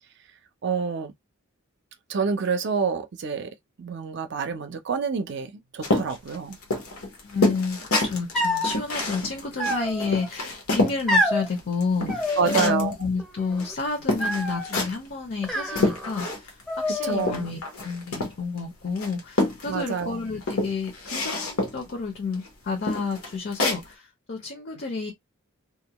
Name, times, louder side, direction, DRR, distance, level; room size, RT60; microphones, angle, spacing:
voice 1, 0.6-1.1 2.1-3.5 3.8-6.6 12.4-12.9 17.0-17.4 19.7-20.2, right 5 dB, 55° right, 0.5 m, -27 dB
sound 1, 5.8-11.0 11.4-12.9 13.6-13.7 14.1-15.1 15.4-16.6 16.9-18.6 19.0-20.0 20.4-21.9 22.3-22.5 22.8-23.8, left 2 dB, 85° left, 1.0 m, -27 dB
voice 2, 7.2-25.1, left 4 dB, 50° left, 0.6 m, -30 dB
sound 2, 8.3-8.8 9.6-10.3 11.1-11.5 12.1-12.9 13.2-13.7 14.2-14.7 15.4-16.3 16.7-17.4, left 1 dB, ahead, 0.5 m, -27 dB
2.4 x 2.2 x 2.9 m
head